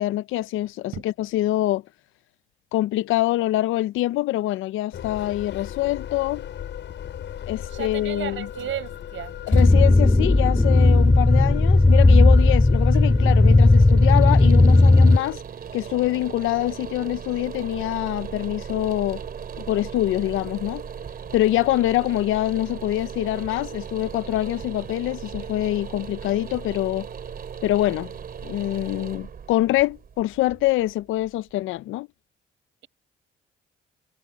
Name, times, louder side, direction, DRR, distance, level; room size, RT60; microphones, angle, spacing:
voice 1, 0.0-1.8 2.7-6.5 7.5-8.5 9.5-15.4 15.7-19.2 19.6-20.8 21.3-27.1 27.6-28.1 28.4-32.1, left 15 dB, 90° left, 0.6 m, -25 dB
sound 1, 4.9-15.4, left 10 dB, 65° left, 7.0 m, -36 dB
voice 2, 7.7-9.6, right 11 dB, 75° right, 6.9 m, -34 dB
sound 2, 9.5-15.2, left 2 dB, 10° left, 0.6 m, -15 dB
sound 3, 12.7-31.5, right 7 dB, 50° right, 3.2 m, -37 dB
cardioid pair, 90°, 20 cm